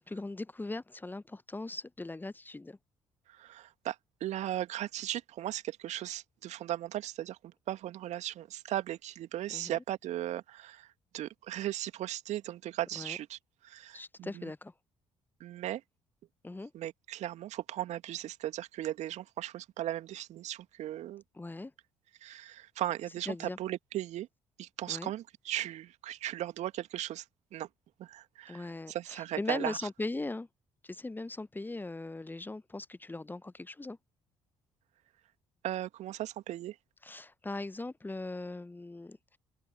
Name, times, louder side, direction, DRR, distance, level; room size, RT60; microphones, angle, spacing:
voice 1, 0.0-2.8 9.5-9.8 13.0-13.2 13.9-14.7 16.4-16.7 21.3-21.7 23.3-23.6 24.9-25.1 28.5-30.5 30.8-34.0 37.0-39.4, left 2 dB, 15° left, 1.0 m, -39 dB
voice 2, 3.3-4.0 4.2-14.5 15.4-15.8 16.7-21.2 22.2-24.3 24.6-27.2 27.5-27.7 28.0-29.8 35.6-36.8, right 13 dB, 55° right, 2.4 m, -37 dB
open air
figure-of-eight pair, 45°, 14 cm